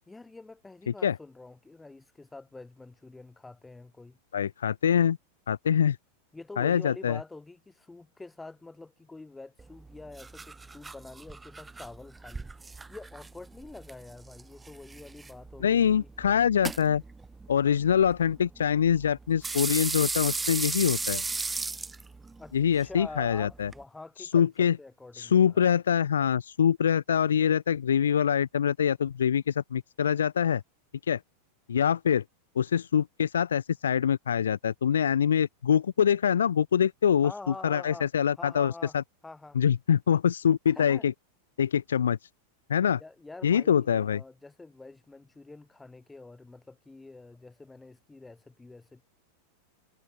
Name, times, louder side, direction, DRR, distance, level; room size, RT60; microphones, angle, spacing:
voice 1, 0.1-4.2 6.3-16.1 22.4-25.7 37.2-39.0 39.2-39.6 40.7-41.1 43.0-49.0, left 3 dB, 10° left, 5.5 m, -46 dB
voice 2, 4.3-5.2 5.5-6.0 6.6-7.2 15.6-17.0 17.5-21.2 22.5-23.7 24.2-24.8 25.1-30.6 31.0-31.2 31.7-32.2 32.6-39.0 39.6-41.1 41.6-42.3 42.7-43.0 43.4-44.2, left 8 dB, 65° left, 0.4 m, -24 dB
sound 1, 9.6-23.8, right 3 dB, 10° right, 0.5 m, -37 dB
figure-of-eight pair, 90°, 0 cm